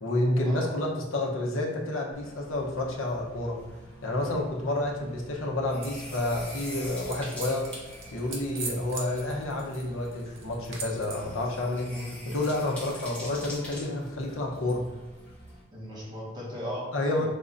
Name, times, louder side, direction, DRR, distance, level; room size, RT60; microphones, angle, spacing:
voice 1, 0.0-3.6 4.0-7.7 8.1-11.9 12.2-14.8 16.9-17.3, left 1 dB, 80° left, -1 dB, 0.9 m, -29 dB
sound 1, 2.1-15.6, left 1 dB, 5° left, 1.2 m, -45 dB
sound 2, 5.8-11.3, right 3 dB, 75° right, 0.9 m, -42 dB
voice 2, 15.7-16.9 17.2-17.3, equal, 20° right, -7 dB, 1.4 m, -37 dB
4.6 x 3.5 x 2.6 m, 1.2 s
head